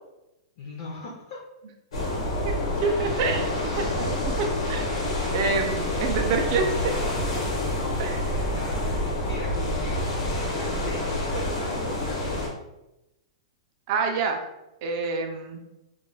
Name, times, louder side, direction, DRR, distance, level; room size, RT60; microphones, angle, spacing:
voice 1, 0.6-1.4 2.8-3.2 7.7-8.1 8.3-10.0 10.4-12.5, left 2 dB, 40° left, -2 dB, 0.4 m, -40 dB
sound 1, 1.9-12.5, left 1 dB, 85° left, 1.0 m, -27 dB
voice 2, 2.7-4.9 5.3-6.9 8.0-8.2 13.9-14.4 14.8-15.6, right 4 dB, 30° right, 3 dB, 0.3 m, -27 dB
2.2 x 2.1 x 3.7 m, 0.92 s
supercardioid pair, 180°, 3 cm